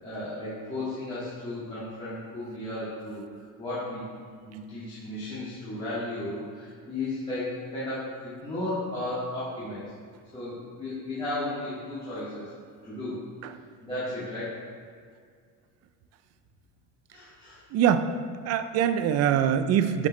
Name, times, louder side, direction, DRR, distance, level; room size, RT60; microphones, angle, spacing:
voice 1, 0.0-4.1 4.4-9.8 10.3-12.5 12.8-13.2 13.8-14.6 17.1-17.6, left 1 dB, 15° left, -13 dB, 2.1 m, -34 dB
voice 2, 17.7-18.1 18.5-20.1, right 9 dB, 45° right, 10 dB, 0.5 m, -23 dB
10.5 x 6.8 x 3.2 m, 2.1 s
cardioid pair, 165°, 35 cm